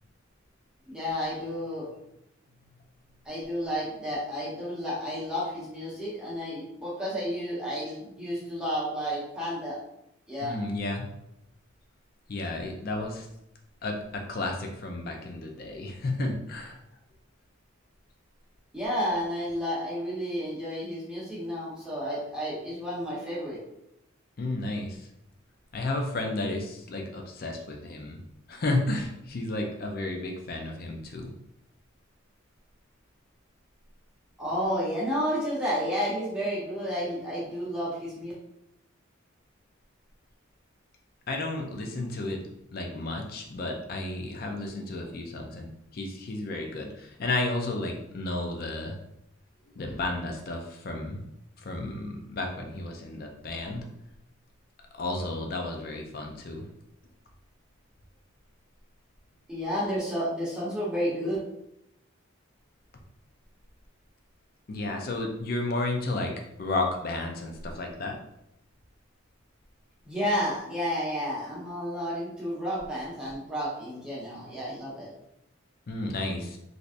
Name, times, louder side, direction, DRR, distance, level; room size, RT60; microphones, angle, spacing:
voice 1, 0.9-1.9 3.2-9.8 10.3-10.6 18.7-23.6 34.4-38.3 59.5-61.4 70.0-75.1, equal, 5° right, -8 dB, 0.9 m, -31 dB
voice 2, 10.4-11.0 12.3-13.3 13.8-16.8 24.4-25.0 25.7-28.2 28.5-31.3 41.3-42.4 42.7-45.7 45.9-49.0 49.8-51.2 51.6-53.8 54.9-56.7 64.7-66.3 66.6-68.2 75.9-76.6, left 2 dB, 45° left, 2 dB, 0.4 m, -32 dB
3.2 x 2.6 x 2.5 m, 0.82 s
head